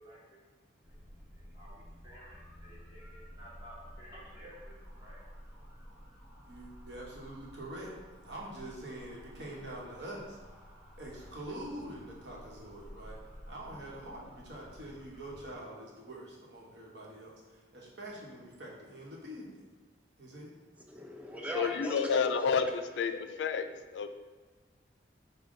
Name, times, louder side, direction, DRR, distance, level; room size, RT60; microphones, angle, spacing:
voice 1, 0.0-6.2, equal, 25° right, -7 dB, 1.2 m, -55 dB
sound 1, 0.8-15.6, equal, 10° left, 1.0 m, -52 dB
voice 2, 6.4-10.4 11.0-13.2 13.5-19.6 20.2-20.5, right 1 dB, 80° right, -3 dB, 1.0 m, -45 dB
voice 3, 20.8-22.2 23.1-23.3 23.7-23.8, right 1 dB, 10° right, 1 dB, 0.4 m, -40 dB
voice 4, 21.6-22.7 23.0-24.1, left 6 dB, 85° left, 9 dB, 0.3 m, -30 dB
5.1 x 2.2 x 3.7 m, 1.4 s
head